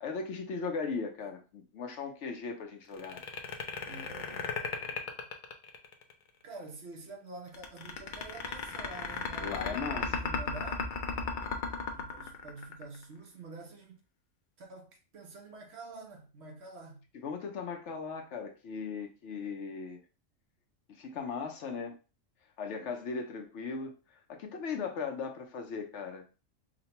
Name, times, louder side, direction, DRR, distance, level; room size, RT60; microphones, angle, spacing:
voice 1, 0.0-3.2 9.4-10.2 17.1-20.0 20.9-21.9 22.6-26.2, left 5 dB, 70° left, 0.9 m, -38 dB
sound 1, 2.9-6.1 7.5-13.0, left 5 dB, 55° left, 0.6 m, -35 dB
voice 2, 3.8-5.2 6.4-10.8 11.9-14.0 14.6-17.0, right 3 dB, 60° right, 1.0 m, -47 dB
4.9 x 2.2 x 2.9 m
omnidirectional pair, 1.3 m